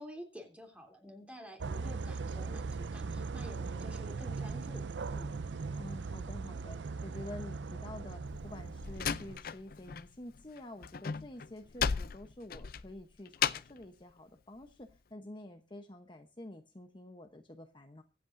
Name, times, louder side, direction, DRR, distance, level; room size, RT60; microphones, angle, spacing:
voice 1, 0.0-4.8 5.1-5.3, equal, 5° right, 3 dB, 3.1 m, -50 dB
sound 1, 1.6-9.4, right 4 dB, 80° right, 0.5 m, -39 dB
voice 2, 5.7-18.0, left 1 dB, 25° left, 5 dB, 0.9 m, -49 dB
Slam, 8.3-10.1 10.3-13.8, left 7 dB, 55° left, 0.5 m, -35 dB
23.5 x 8.5 x 2.6 m, 0.33 s
head